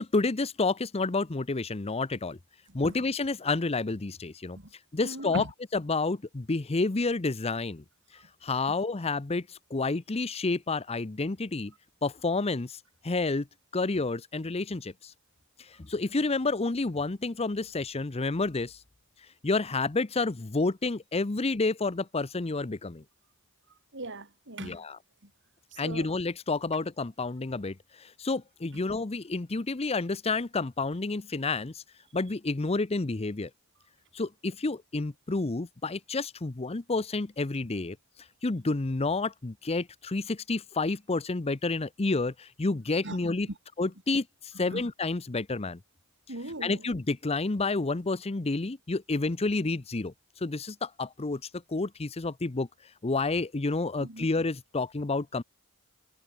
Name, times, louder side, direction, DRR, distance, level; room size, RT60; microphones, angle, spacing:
voice 1, 0.0-2.4 2.7-4.6 4.9-5.4 5.7-7.8 8.4-11.7 12.0-13.5 13.7-15.1 15.6-18.8 19.4-23.0 24.6-25.0 25.8-31.8 32.1-33.5 34.1-38.0 38.4-43.5 43.8-45.8 46.6-51.4 51.7-52.7 53.0-55.4, left 3 dB, 25° left, 0.7 m, -30 dB
voice 2, 5.0-5.5 23.9-24.8 25.2-25.3 25.7-26.1 43.0-43.2 44.5-44.8 46.3-46.9 54.0-54.3, right 1 dB, 55° right, 4.8 m, -39 dB
head